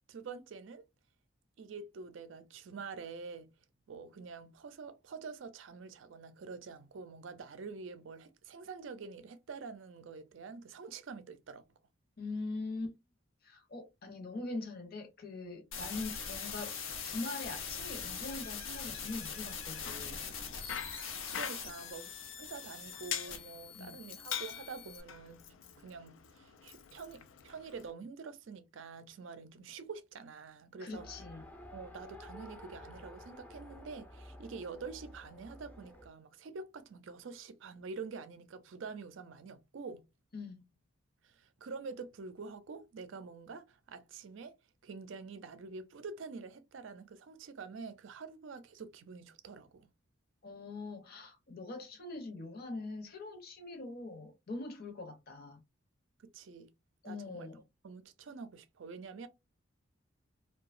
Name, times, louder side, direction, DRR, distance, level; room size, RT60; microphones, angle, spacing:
voice 1, 0.1-0.9 1.6-3.5 3.9-11.6 21.3-25.4 25.8-31.2 31.7-40.0 41.2-44.5 44.8-49.9 56.3-56.7 57.0-57.5 57.8-59.3, right 4 dB, 70° right, 0.4 m, -47 dB
voice 2, 12.2-13.0 13.4-20.2 23.7-23.9 30.8-31.5 40.3-40.7 50.4-55.6 57.0-57.6, left 3 dB, 50° left, 0.7 m, -42 dB
sound 1, 15.7-25.0, left 6 dB, 85° left, 0.7 m, -42 dB
Bicycle, 19.6-27.9, left 9 dB, 70° left, 0.3 m, -45 dB
Race car auto racing, 30.9-36.1, left 1 dB, 10° left, 0.4 m, -51 dB
2.8 x 2.2 x 2.4 m
head